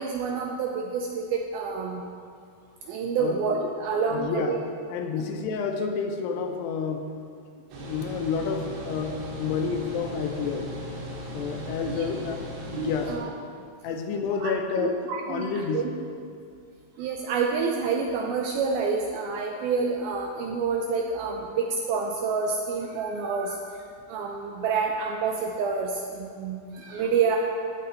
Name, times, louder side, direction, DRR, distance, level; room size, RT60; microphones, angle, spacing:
voice 1, 0.0-2.0 2.8-4.6 11.9-12.1 12.7-13.3 14.4-15.9 17.0-23.8 24.1-27.4, right 5 dB, 85° right, 1 dB, 2.2 m, -28 dB
voice 2, 4.1-4.6 4.9-7.1 7.8-10.7 11.3-13.1 13.8-15.0 15.3-15.9, left 6 dB, 85° left, 4 dB, 2.7 m, -29 dB
sound 1, 7.7-13.2, equal, 70° right, 3.2 m, -37 dB
15.5 x 6.6 x 4.1 m, 2.3 s
omnidirectional pair, 4.9 m